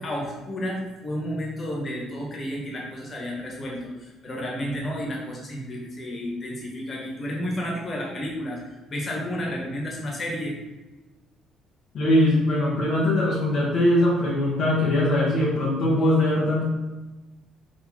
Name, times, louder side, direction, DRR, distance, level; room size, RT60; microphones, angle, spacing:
voice 1, 0.0-10.5, equal, 25° left, -2 dB, 1.5 m, -31 dB
voice 2, 11.9-16.6, left 1 dB, 45° left, -5 dB, 1.0 m, -21 dB
4.9 x 4.2 x 4.7 m, 1.1 s
cardioid pair, 175°, 0 cm